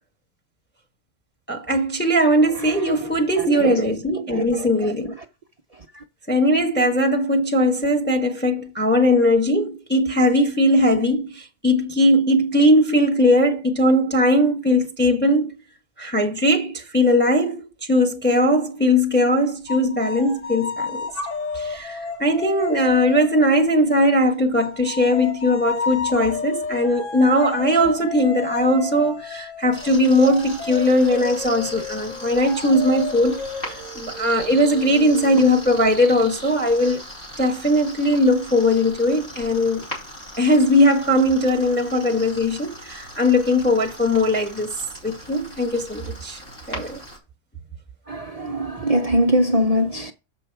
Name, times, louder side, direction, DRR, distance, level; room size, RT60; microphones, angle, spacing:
voice 1, 1.5-5.1 6.3-15.5 16.0-21.1 21.5-37.0 37.4-39.8 40.4-44.7 45.0-46.4 46.7-47.0, left 1 dB, 10° left, 0.9 m, -19 dB
voice 2, 3.4-3.8 4.3-4.7 48.1-50.1, equal, 55° right, 0.4 m, -22 dB
sound 1, 19.7-24.0 24.6-35.9, left 4 dB, 65° left, 1.5 m, -32 dB
sound 2, 29.7-47.2, equal, 40° left, 3.2 m, -39 dB
7.0 x 5.7 x 4.5 m
omnidirectional pair, 1.4 m